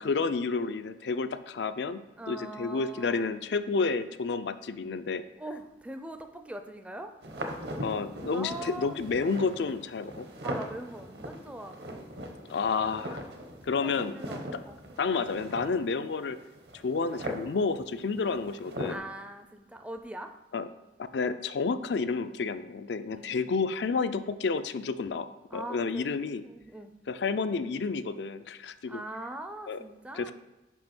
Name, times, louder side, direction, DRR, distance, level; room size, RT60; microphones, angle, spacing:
voice 1, 0.0-5.2 7.8-10.3 12.5-13.2 13.6-14.2 15.0-16.4 16.8-19.0 20.5-20.7 21.1-26.4 27.1-29.0 29.7-29.8 30.1-30.3, left 4 dB, 70° left, 11 dB, 0.4 m, -30 dB
voice 2, 2.2-3.3 5.4-7.1 8.3-9.0 10.4-12.3 13.0-13.2 13.7-14.8 18.9-20.3 23.1-23.5 25.5-26.1 26.4-26.9 28.9-30.3, right 1 dB, 5° right, 6 dB, 0.4 m, -42 dB
sound 1, 7.2-19.0, right 1 dB, 65° right, 1.0 m, -40 dB
5.4 x 5.0 x 6.0 m, 1.0 s
head